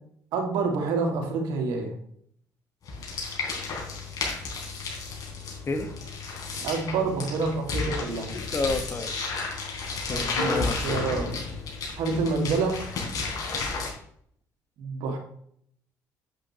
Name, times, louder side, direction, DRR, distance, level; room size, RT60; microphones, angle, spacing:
voice 1, 0.3-1.9 6.6-8.4 10.1-11.3 12.0-12.8 14.8-15.2, right 4 dB, 80° right, 2 dB, 2.2 m, -27 dB
sound 1, 2.8-13.9, left 3 dB, 60° left, 3.8 m, -32 dB
voice 2, 8.3-9.1 10.1-10.8, left 3 dB, 35° left, 6 dB, 1.6 m, -30 dB
8.9 x 8.2 x 3.2 m, 0.65 s
supercardioid pair, 70°, 7 cm